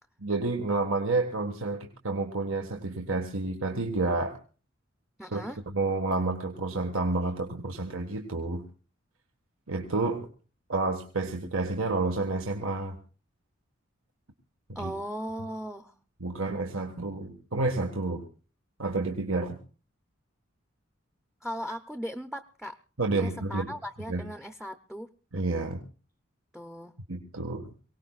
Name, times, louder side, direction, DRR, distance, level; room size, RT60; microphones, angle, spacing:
voice 1, 0.2-4.4 5.3-8.6 9.7-10.3 10.7-13.0 14.8-14.9 16.2-18.2 18.8-19.6 23.0-23.7 24.1-24.2 25.3-25.8 27.1-27.7, right 3 dB, 80° right, 4 dB, 1.6 m, -30 dB
voice 2, 5.2-5.6 14.7-15.9 21.4-22.8 23.2-25.1 26.5-27.0, equal, ahead, 9 dB, 0.6 m, -37 dB
23.5 x 18.5 x 2.4 m, 0.37 s
head